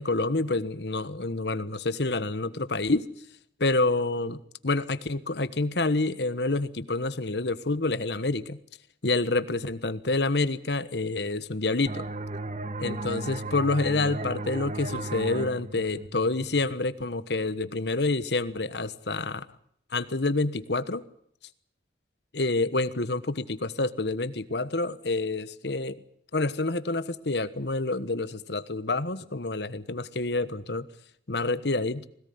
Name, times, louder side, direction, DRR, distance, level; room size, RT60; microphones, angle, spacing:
voice 1, 0.0-3.0 3.6-8.6 9.0-12.0 12.8-19.4 19.9-21.0 22.3-26.0 26.3-30.9 31.3-32.1, left 2 dB, 65° left, 14 dB, 1.3 m, -28 dB
sound 1, 11.9-17.2, right 2 dB, 40° right, 1.3 m, -36 dB
21.0 x 18.0 x 9.5 m, 0.68 s
head